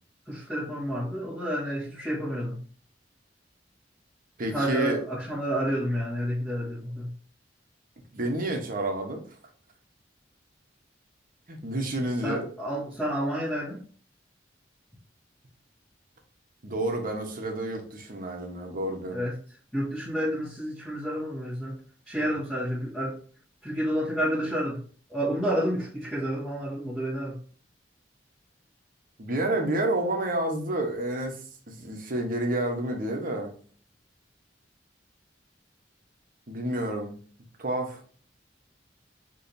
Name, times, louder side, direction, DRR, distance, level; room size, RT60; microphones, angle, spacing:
voice 1, 0.3-2.6 4.5-7.1 12.2-13.8 19.1-19.4 19.7-21.8 22.1-23.2 23.6-24.8 25.1-27.4, equal, 5° left, -10 dB, 1.4 m, -30 dB
voice 2, 4.4-5.0 8.1-9.2 11.5-12.5 16.6-19.2 29.2-31.4 31.7-33.5 36.5-37.2 37.6-38.0, right 1 dB, 50° right, 3 dB, 1.1 m, -29 dB
6.3 x 3.1 x 2.7 m, 0.43 s
head